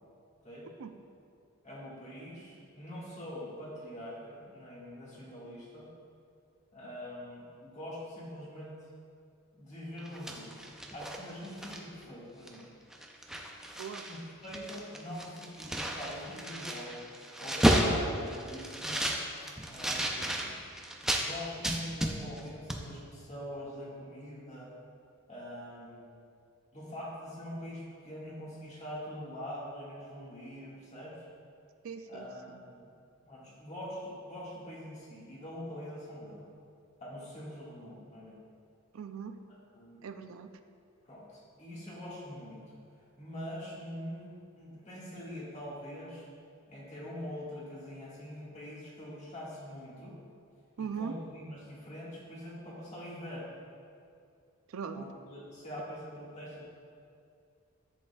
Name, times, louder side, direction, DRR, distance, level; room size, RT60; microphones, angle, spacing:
voice 1, 1.6-5.9 6.7-8.8 9.5-10.5 10.9-12.6 14.1-17.1 17.4-19.2 19.7-20.5 21.2-24.7 25.3-26.2 26.7-31.3 32.1-32.9 33.3-36.4 37.0-38.4 39.5-40.0 41.0-42.6 43.2-46.3 46.7-50.2 50.8-53.6 54.9-56.7, equal, 30° left, -6 dB, 1.7 m, -44 dB
sound 1, 10.0-12.0 12.5-12.6 12.9-14.2 14.4-21.3 21.6-22.4 22.7-22.8, right 1 dB, ahead, 0.4 m, -32 dB
voice 2, 31.8-32.3 38.9-39.4 40.0-40.5 50.8-51.1 54.7-55.1, right 6 dB, 70° right, 9 dB, 0.4 m, -39 dB
10.5 x 7.8 x 2.3 m, 2.4 s
head